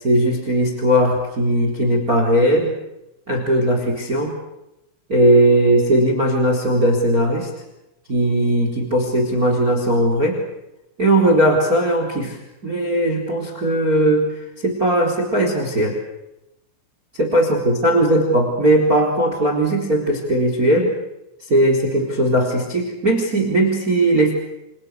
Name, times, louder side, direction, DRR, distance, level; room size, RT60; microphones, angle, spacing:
voice 1, 0.0-2.7 3.3-4.3 5.1-7.5 8.1-10.4 11.0-12.4 12.6-14.3 14.6-16.0 17.2-20.9 21.5-24.3, right 1 dB, 20° right, 4 dB, 3.8 m, -18 dB
29.5 x 27.5 x 6.6 m, 0.89 s
omnidirectional pair, 6.0 m